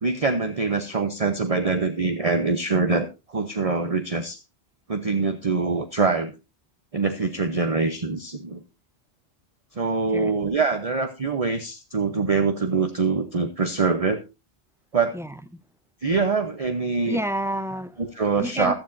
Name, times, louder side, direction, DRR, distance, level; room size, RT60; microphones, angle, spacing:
voice 1, 0.0-4.4 4.9-6.3 6.9-8.6 9.7-14.2 14.9-15.1 16.0-17.2 18.0-18.7, right 4 dB, 35° right, 0.9 m, -24 dB
voice 2, 15.1-15.6 17.0-18.0 18.4-18.7, equal, 5° right, 0.5 m, -29 dB
16.0 x 12.0 x 2.6 m
omnidirectional pair, 1.2 m